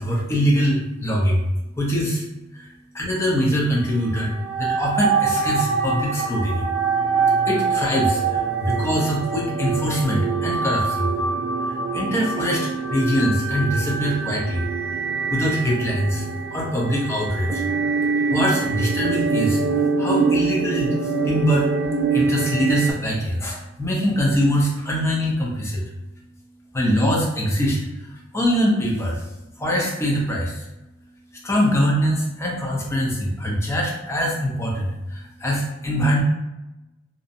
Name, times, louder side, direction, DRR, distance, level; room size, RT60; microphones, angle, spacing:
voice 1, 0.0-1.5 1.8-2.3 2.5-2.6 2.9-6.7 7.5-11.1 11.6-17.7 18.3-21.7 22.1-25.8 26.7-30.7 31.4-36.2, equal, 15° left, -3 dB, 0.5 m, -23 dB
sound 1, 4.0-22.9, right 5 dB, 70° right, 0.3 m, -24 dB
2.5 x 2.0 x 2.5 m, 0.99 s
head